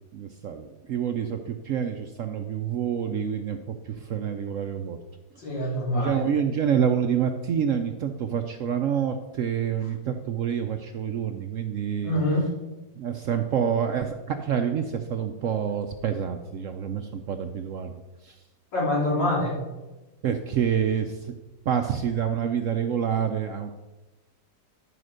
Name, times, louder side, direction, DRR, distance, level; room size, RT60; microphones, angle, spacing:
voice 1, 0.1-5.0 5.5-12.1 13.0-17.9 18.2-18.4 20.2-21.3 21.7-23.7, right 8 dB, 70° right, 7 dB, 0.8 m, -27 dB
voice 2, 5.4-6.2 12.0-12.5 18.7-19.6, left 1 dB, 90° left, -5 dB, 3.9 m, -25 dB
11.0 x 5.0 x 6.4 m, 1.1 s
omnidirectional pair, 1.9 m